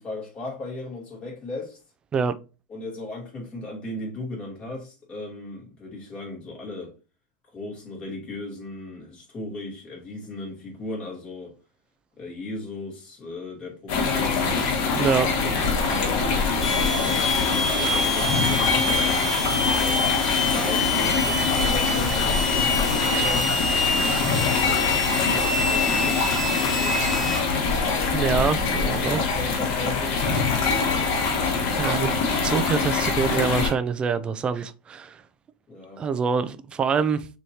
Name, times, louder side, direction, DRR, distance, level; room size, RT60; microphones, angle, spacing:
voice 1, 0.0-1.8 2.7-6.9 7.5-11.5 12.2-14.9 15.8-18.9 19.8-23.6 24.4-27.3 29.1-30.3 35.7-36.0, left 2 dB, 30° left, 2.7 m, -37 dB
sound 1, 13.9-33.7, left 4 dB, 60° left, 1.5 m, -24 dB
voice 2, 14.9-15.3 28.1-29.2 31.8-35.2 36.0-37.3, right 6 dB, 25° right, 0.4 m, -25 dB
sound 2, 16.6-27.4, left 2 dB, 5° left, 1.8 m, -27 dB
6.2 x 3.1 x 2.8 m
supercardioid pair, 125°, 4 cm